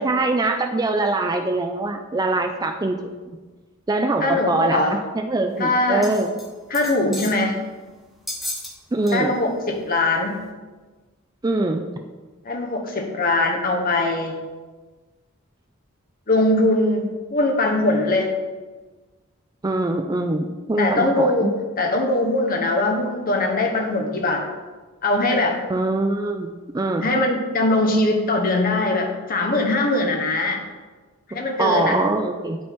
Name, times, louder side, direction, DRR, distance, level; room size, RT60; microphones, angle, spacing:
voice 1, 0.0-3.0 3.9-6.3 7.0-7.3 8.9-9.3 11.4-11.9 19.6-21.5 25.7-27.1 31.3-32.6, right 2 dB, 20° right, 5 dB, 0.4 m, -23 dB
voice 2, 4.2-4.9 5.6-6.1 6.7-7.6 9.1-10.4 12.4-14.4 16.3-18.3 20.8-24.4 25.0-25.6 27.0-30.6 31.3-32.0, left 2 dB, 40° left, 2 dB, 1.0 m, -21 dB
sound 1, 6.0-6.5 6.7-7.4 8.3-8.7 9.1-9.2 9.7-9.8, left 1 dB, ahead, 0.9 m, -33 dB
9.7 x 5.2 x 3.6 m, 1.3 s
head